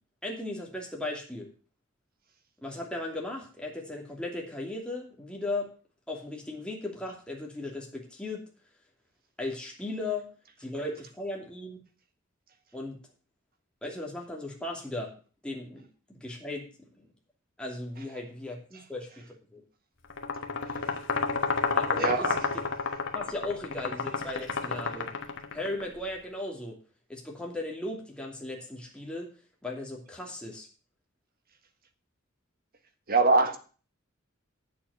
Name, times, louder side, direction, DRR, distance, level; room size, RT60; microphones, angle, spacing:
voice 1, 0.2-1.5 2.6-5.7 6.1-8.4 9.4-10.3 10.6-11.8 12.7-13.0 13.8-15.1 15.4-17.1 17.6-19.6 21.7-22.5 23.1-25.1 25.5-26.8 27.1-29.3 29.6-30.7, left 2 dB, 5° left, -1 dB, 2.7 m, -37 dB
sound 1, 20.1-25.8, left 4 dB, 60° left, 1.3 m, -31 dB
voice 2, 22.0-22.4 33.1-33.6, right 3 dB, 45° right, 8 dB, 1.5 m, -23 dB
8.5 x 7.5 x 7.0 m, 0.38 s
head